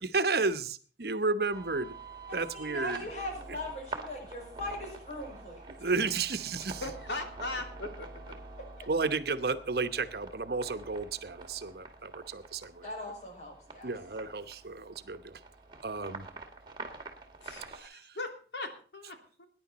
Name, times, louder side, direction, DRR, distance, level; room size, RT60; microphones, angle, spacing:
voice 1, 0.0-1.9 2.3-3.1 5.8-6.8 8.9-12.8 13.8-15.4 15.8-16.3 17.7-18.1, right 4 dB, 65° right, 11 dB, 1.0 m, -32 dB
sound 1, 1.5-17.8, right 3 dB, 25° right, 2.0 m, -47 dB
voice 2, 2.3-6.2 8.8-8.9 12.8-13.9, left 1 dB, 40° left, 0 dB, 5.8 m, -41 dB
voice 3, 6.8-8.3 17.4-19.5, left 2 dB, 85° left, 4 dB, 3.1 m, -39 dB
20.0 x 10.5 x 4.1 m, 0.41 s
head